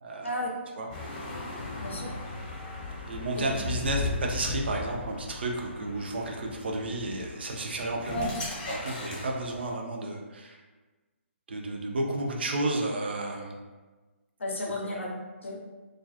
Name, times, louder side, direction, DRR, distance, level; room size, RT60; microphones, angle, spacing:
voice 1, 0.0-0.4 0.8-0.9 1.6-1.7 3.1-8.3 8.7-10.6 11.5-13.6 14.9-15.0, right 2 dB, 55° right, 1 dB, 0.4 m, -32 dB
sound 1, 0.9-9.7, left 3 dB, 30° left, 0.9 m, -37 dB
voice 2, 1.8-2.1 3.4-3.5 8.1-8.3 14.4-15.1 15.4-15.6, left 1 dB, 70° left, -1 dB, 0.6 m, -32 dB
2.3 x 2.2 x 2.5 m, 1.3 s
figure-of-eight pair, 135°, 7 cm